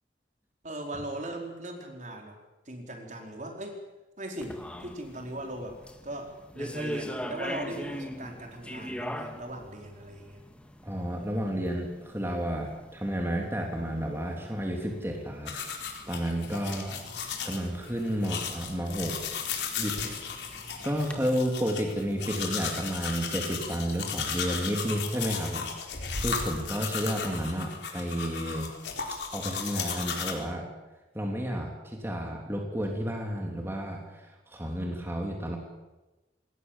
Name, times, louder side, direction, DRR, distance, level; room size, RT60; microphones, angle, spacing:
voice 1, 0.6-2.4 2.6-3.8 4.2-10.4 16.6-17.2, right 1 dB, 45° right, 2 dB, 4.5 m, -39 dB
sound 1, 4.4-21.2, equal, 5° left, 1.8 m, -42 dB
voice 2, 10.8-15.5 16.1-17.0 17.4-19.2 19.8-20.5 20.8-25.7 26.1-28.7 29.3-30.7 31.1-35.6, equal, 15° right, 0 dB, 3.2 m, -31 dB
sound 2, 15.5-30.3, left 6 dB, 80° left, 4.2 m, -35 dB
27.5 x 21.0 x 7.5 m, 1.1 s
head